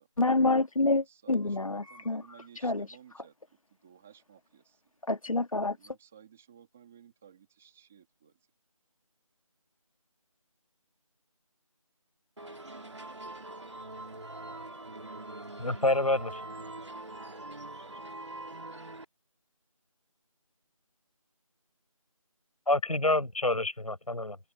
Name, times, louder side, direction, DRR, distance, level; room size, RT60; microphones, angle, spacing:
voice 1, 0.2-2.2 2.6-2.9 5.1-5.8, left 2 dB, 70° left, 1.7 m, -27 dB
voice 2, 1.0-3.3 3.8-4.8 5.8-8.4, right 8 dB, 5° right, 1.9 m, -56 dB
sound 1, 12.4-19.1, right 2 dB, 55° right, 2.2 m, -43 dB
voice 3, 15.6-16.4 22.7-24.4, left 2 dB, 90° left, 5.2 m, -27 dB
figure-of-eight pair, 180°, 18 cm